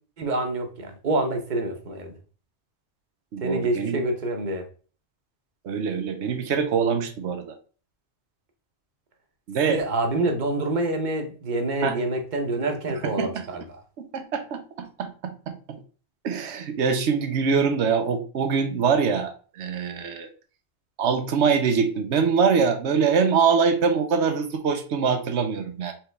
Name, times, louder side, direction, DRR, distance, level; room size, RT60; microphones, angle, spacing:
voice 1, 0.2-2.2 3.4-4.6 9.7-13.6, right 2 dB, 45° right, 4 dB, 0.9 m, -27 dB
voice 2, 3.3-4.0 5.6-7.5 9.5-9.8 11.8-12.0 13.0-13.5 14.0-15.8 16.2-20.3 21.0-25.9, right 6 dB, 85° right, 7 dB, 1.0 m, -24 dB
4.5 x 3.5 x 3.2 m, 0.39 s
omnidirectional pair, 1.1 m